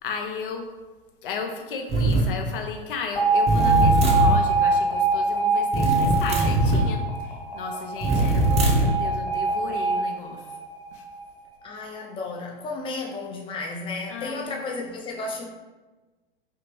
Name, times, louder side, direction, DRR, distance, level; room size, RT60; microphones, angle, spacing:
voice 1, 0.0-0.7 1.2-10.5 10.9-11.1 14.1-14.6, left 5 dB, 65° left, 4 dB, 0.7 m, -35 dB
sound 1, 1.9-2.3 3.5-4.4 5.7-6.9 8.0-9.0, right 2 dB, 20° right, 0.7 m, -21 dB
Alarm, 3.2-11.2, right 3 dB, 35° left, 1.3 m, -24 dB
voice 2, 11.6-15.5, left 3 dB, 15° left, 0 dB, 0.5 m, -33 dB
3.3 x 2.8 x 3.0 m, 1.2 s
figure-of-eight pair, 100°, 29 cm